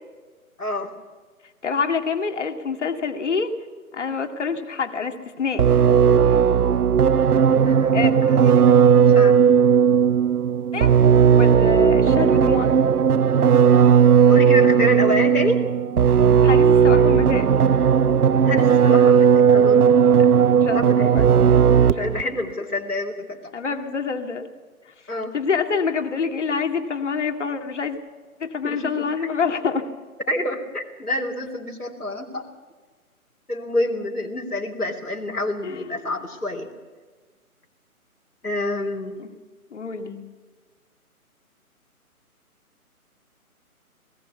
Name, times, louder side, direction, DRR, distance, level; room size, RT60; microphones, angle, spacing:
voice 1, 0.6-0.9 7.5-8.5 9.1-9.4 14.0-15.6 18.4-19.9 20.7-21.1 21.9-23.5 25.1-25.4 28.6-29.3 30.3-32.5 33.5-36.7 38.4-39.2, left 1 dB, 90° left, 1 dB, 3.5 m, -28 dB
voice 2, 1.6-3.6 3.9-5.6 7.9-8.1 10.7-10.9 11.3-12.7 16.4-17.5 20.2-20.3 20.6-21.4 21.9-22.3 23.5-24.5 25.3-28.0 28.4-29.9 35.6-36.0 39.2-39.3 39.7-40.2, left 5 dB, 50° left, 6 dB, 2.2 m, -26 dB
sound 1, 5.6-22.2, right 7 dB, 85° right, 0.6 m, -16 dB
20.5 x 16.5 x 8.2 m, 1.4 s
figure-of-eight pair, 140°, 44 cm